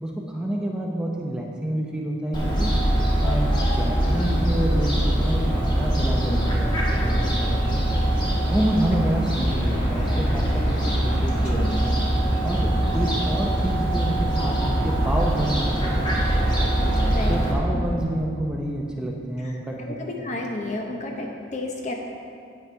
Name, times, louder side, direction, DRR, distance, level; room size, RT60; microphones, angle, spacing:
voice 1, 0.0-2.7 3.2-7.8 8.5-11.9 12.4-16.5 17.3-19.8, right 1 dB, 5° right, -2 dB, 0.7 m, -28 dB
Fowl, 2.3-17.5, right 1 dB, 25° left, 1.5 m, -22 dB
voice 2, 6.2-6.5 11.4-11.8 17.1-17.4 17.7-18.1 19.4-21.9, left 2 dB, 40° left, 1 dB, 0.9 m, -32 dB
9.0 x 6.4 x 4.5 m, 2.4 s
head